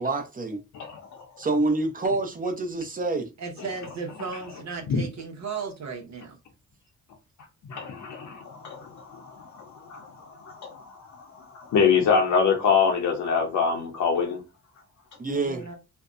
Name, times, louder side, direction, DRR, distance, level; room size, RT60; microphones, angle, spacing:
voice 1, 0.0-0.6 1.4-3.3 15.2-15.6, right 2 dB, 25° right, 0.7 m, -27 dB
voice 2, 0.7-1.4 4.9-5.0 7.7-11.3 11.5-14.4, left 6 dB, 70° left, 0.7 m, -25 dB
voice 3, 3.4-6.4 15.3-15.7, right 5 dB, 60° right, 0.8 m, -35 dB
2.6 x 2.1 x 2.4 m
cardioid pair, 70°, 31 cm